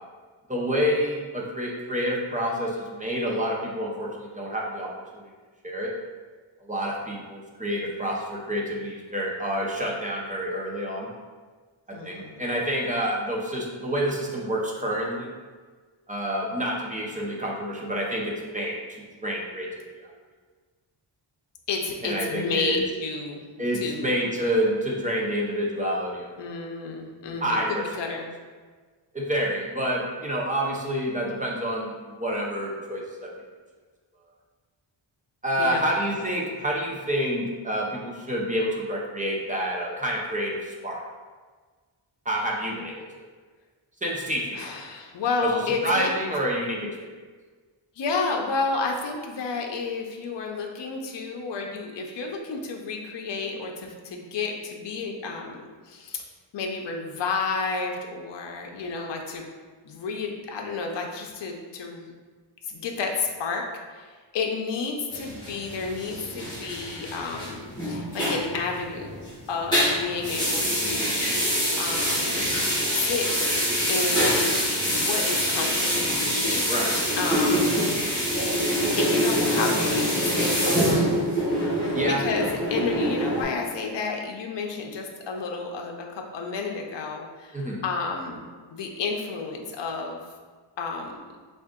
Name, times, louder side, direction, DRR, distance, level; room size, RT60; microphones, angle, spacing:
voice 1, 0.5-5.2 5.6-5.9 6.6-11.1 12.0-15.3 16.1-18.8 19.2-20.1 22.0-22.8 23.6-26.5 27.4-27.8 29.1-33.3 35.4-41.0 42.3-43.0 44.0-44.7 45.4-47.2 76.7-76.9 81.9-82.2 87.5-87.8, equal, 20° right, -3 dB, 0.4 m, -28 dB
voice 2, 11.9-12.4 21.7-23.4 23.8-24.1 26.4-27.6 28.0-28.3 35.6-35.8 44.5-46.1 48.0-56.3 56.5-59.5 59.8-62.1 62.6-71.3 71.8-72.5 72.8-73.6 73.9-76.6 77.2-77.7 79.0-81.3 81.7-90.2 90.8-91.2, left 4 dB, 60° left, 1 dB, 0.5 m, -31 dB
sound 1, 65.1-69.3 69.6-83.4, equal, 10° left, 1.3 m, -25 dB
3.6 x 2.4 x 3.6 m, 1.4 s
wide cardioid pair, 180°, 48 cm